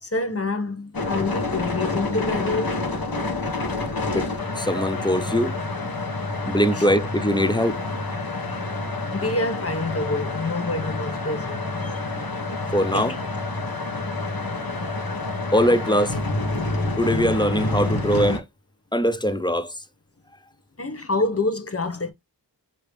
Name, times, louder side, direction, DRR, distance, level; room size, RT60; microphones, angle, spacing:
voice 1, 0.0-2.8 6.7-6.9 9.1-11.7 12.9-13.2 20.8-22.1, left 2 dB, 35° left, 1.0 m, -27 dB
sound 1, 0.9-18.4, left 2 dB, 55° left, 1.1 m, -28 dB
voice 2, 4.6-5.5 6.5-7.8 12.7-13.2 15.5-16.2 17.0-18.4 18.9-19.7, equal, 10° left, 0.5 m, -21 dB
4.9 x 2.9 x 3.1 m
wide cardioid pair, 40°, 42 cm